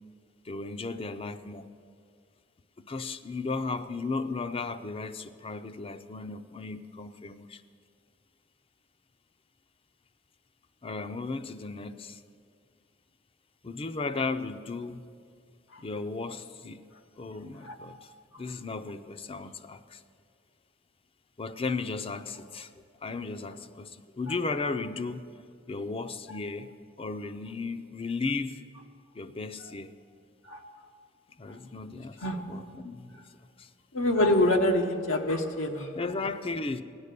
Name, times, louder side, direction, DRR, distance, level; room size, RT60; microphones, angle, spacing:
voice 1, 0.4-1.7 2.9-7.6 10.8-12.2 13.6-15.0 15.8-16.9 17.2-18.1 18.4-20.0 21.4-22.7 23.0-25.3 25.7-28.6 29.1-29.9 31.4-33.2 33.6-33.7 35.9-36.8, left 3 dB, 30° left, 11 dB, 0.5 m, -35 dB
voice 2, 33.9-36.0, left 1 dB, 90° left, 3 dB, 1.0 m, -26 dB
17.0 x 9.7 x 6.7 m, 2.3 s
head